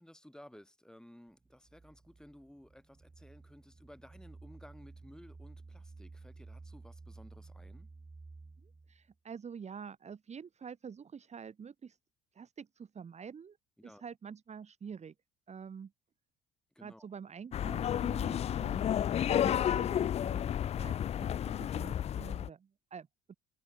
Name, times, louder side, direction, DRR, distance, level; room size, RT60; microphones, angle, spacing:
voice 1, 0.0-7.9 13.8-14.0 16.8-17.1, equal, 5° left, 5.5 m, -56 dB
sound 1, 1.3-9.1, right 3 dB, 20° right, 3.4 m, -53 dB
voice 2, 8.6-12.0 12.3-13.6 13.8-15.1 15.5-15.9 16.8-18.8 19.4-23.3, right 6 dB, 40° right, 2.4 m, -48 dB
sound 2, 17.5-22.5, left 10 dB, 40° left, 0.4 m, -31 dB
hypercardioid pair, 65°, 18 cm